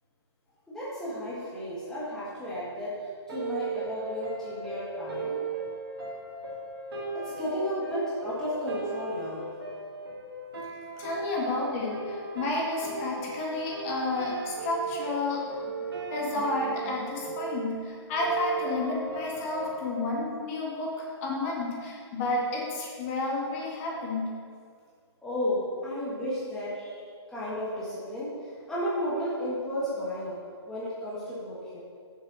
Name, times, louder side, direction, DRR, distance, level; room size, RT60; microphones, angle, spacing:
voice 1, 0.7-5.4 7.1-9.4 25.2-30.4 30.7-31.8, equal, 5° left, -10 dB, 1.5 m, -33 dB
sound 1, 3.3-19.7, right 4 dB, 60° right, 2.0 m, -37 dB
voice 2, 11.0-15.8 16.1-24.3, left 2 dB, 30° left, -3 dB, 1.8 m, -31 dB
6.8 x 5.9 x 5.5 m, 2.2 s
figure-of-eight pair, 130°, 14 cm